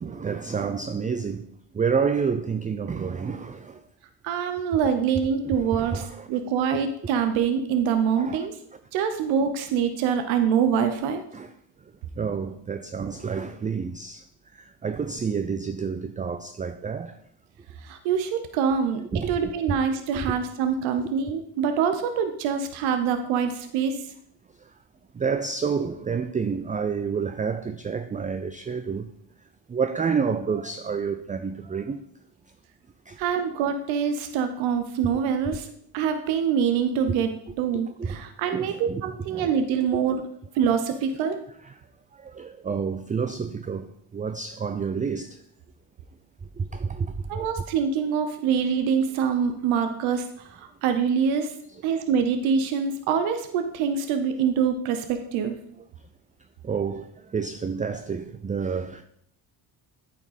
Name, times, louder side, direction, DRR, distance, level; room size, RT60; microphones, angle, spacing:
voice 1, 0.0-1.5 1.7-3.8 5.4-6.3 8.2-8.5 11.3-11.5 12.2-14.2 14.5-17.2 19.1-19.3 19.7-19.8 21.0-21.1 25.1-29.1 29.7-32.0 33.1-33.2 35.0-35.1 37.1-37.2 38.0-38.2 38.5-39.0 39.3-39.5 39.9-40.0 41.7-41.8 42.2-45.4 46.6-47.5 51.9-52.0 56.6-59.0, right 6 dB, 20° right, 0.4 m, -29 dB
voice 2, 4.2-8.6 8.9-11.2 17.8-19.0 19.3-24.0 33.2-35.7 35.9-37.3 37.6-40.2 40.5-41.4 47.3-51.5 51.8-55.6, right 7 dB, 90° right, 0.8 m, -25 dB
8.7 x 5.2 x 4.1 m
supercardioid pair, 75°, 45 cm